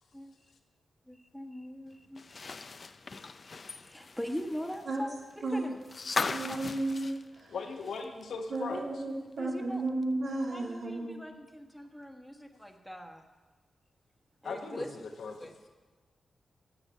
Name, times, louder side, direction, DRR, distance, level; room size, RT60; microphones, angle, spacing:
voice 1, 1.1-2.4 3.8-5.1 5.5-5.7 6.5-6.6 8.7-8.8 9.4-9.8 10.5-13.2 14.4-14.9 15.4-15.5, equal, 5° left, 3 dB, 1.4 m, -41 dB
sound 1, 2.2-8.2 8.5-8.6 10.0-10.1, left 4 dB, 45° left, 0.5 m, -38 dB
voice 2, 6.3-7.6 8.5-11.2, right 2 dB, 75° right, -2 dB, 2.8 m, -33 dB
voice 3, 7.5-8.8 14.4-15.7, left 4 dB, 85° left, 2 dB, 1.4 m, -39 dB
9.9 x 8.1 x 8.3 m, 1.3 s
cardioid pair, 85°, 0 cm